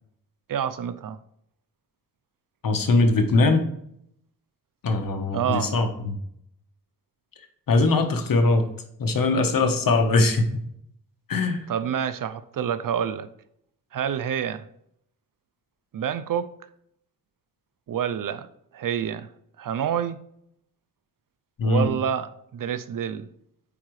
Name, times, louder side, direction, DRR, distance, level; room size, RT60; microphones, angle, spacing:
voice 1, 0.5-1.2 5.3-5.7 11.7-13.3 13.9-14.7 15.9-16.5 17.9-18.5 18.7-19.3 19.6-20.2 21.6-23.3, right 8 dB, 60° right, 0.5 m, -28 dB
voice 2, 2.6-3.6 4.8-6.2 7.7-8.6 9.0-10.5 11.3-11.7 21.6-21.9, left 3 dB, 65° left, 1.2 m, -21 dB
8.6 x 4.8 x 3.2 m
cardioid pair, 75°, 36 cm